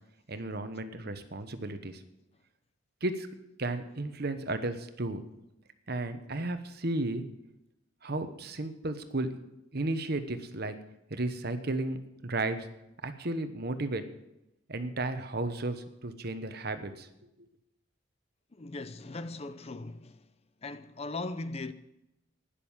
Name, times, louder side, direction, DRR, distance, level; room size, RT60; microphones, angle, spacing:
voice 1, 0.3-2.0 3.0-3.3 3.6-5.2 5.9-7.2 8.0-9.3 9.7-10.7 11.1-12.0 12.2-12.7 13.0-14.0 14.7-17.1, right 2 dB, 50° right, 1.1 m, -33 dB
voice 2, 18.5-20.3 20.6-21.7, left 2 dB, 30° left, 0.5 m, -39 dB
12.0 x 10.0 x 7.3 m
head